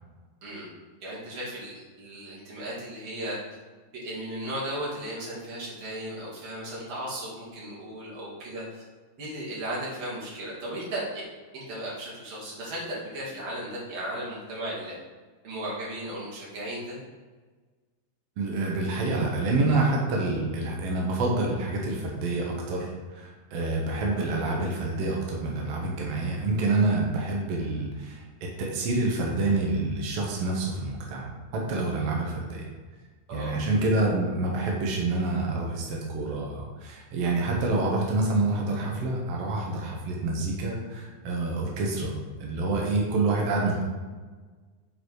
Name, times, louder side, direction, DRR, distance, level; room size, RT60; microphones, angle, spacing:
voice 1, 1.0-3.4 3.9-8.8 9.2-11.0 11.5-15.0 15.4-17.0 33.3-33.6, right 1 dB, 45° right, -7 dB, 3.1 m, -36 dB
voice 2, 18.4-31.3 31.5-32.6 33.3-42.1 42.4-43.9, right 2 dB, 75° right, -2 dB, 1.4 m, -27 dB
6.7 x 5.0 x 4.7 m, 1.4 s
omnidirectional pair, 4.4 m